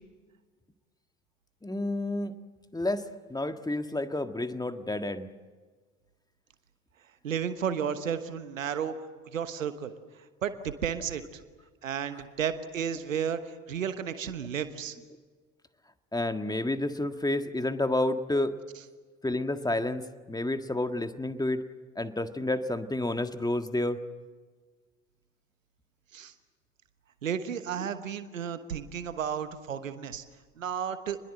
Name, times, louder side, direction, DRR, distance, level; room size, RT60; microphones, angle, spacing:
voice 1, 1.6-2.3 2.7-5.3 16.1-18.6 19.2-21.6 21.9-24.0, left 1 dB, 10° left, 8 dB, 1.7 m, -30 dB
voice 2, 7.2-9.1 9.3-9.9 10.4-11.2 11.8-14.9 26.1-26.3 27.2-30.2 30.6-31.2, right 8 dB, 85° right, 11 dB, 1.2 m, -33 dB
27.0 x 21.5 x 7.8 m, 1.4 s
figure-of-eight pair, 55°, 38 cm